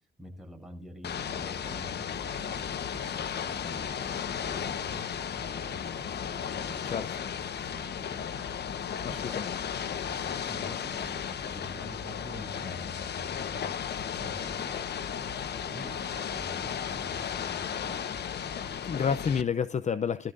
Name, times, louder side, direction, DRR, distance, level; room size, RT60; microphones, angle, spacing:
voice 1, 0.2-7.0 7.6-8.2 9.1-9.4 9.6-18.0, equal, ahead, 8.0 m, -47 dB
Ocean / Boat Water vehicle, 1.0-19.4, left 8 dB, 55° left, 1.2 m, -35 dB
voice 2, 9.0-9.6 18.8-20.3, left 6 dB, 35° left, 0.6 m, -29 dB
20.5 x 13.5 x 2.6 m
cardioid pair, 90°, 20 cm